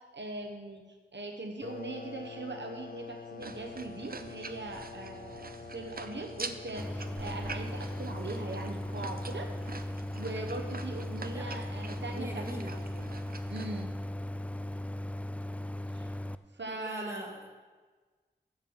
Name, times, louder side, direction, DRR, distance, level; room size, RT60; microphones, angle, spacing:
voice 1, 0.1-0.8 1.1-9.5 10.2-13.1 13.5-13.9 15.9-16.1 16.5-17.3, right 2 dB, 75° right, 3 dB, 0.9 m, -40 dB
sound 1, 1.6-10.0, left 5 dB, 50° left, 0.6 m, -48 dB
sound 2, 3.4-13.8, right 4 dB, 55° right, 0.5 m, -45 dB
Idling, 6.8-16.3, left 1 dB, 5° left, 0.3 m, -37 dB
voice 2, 12.1-12.7 16.7-17.5, equal, 15° right, -1 dB, 2.0 m, -41 dB
7.7 x 7.3 x 7.1 m, 1.4 s
wide cardioid pair, 40°, 19 cm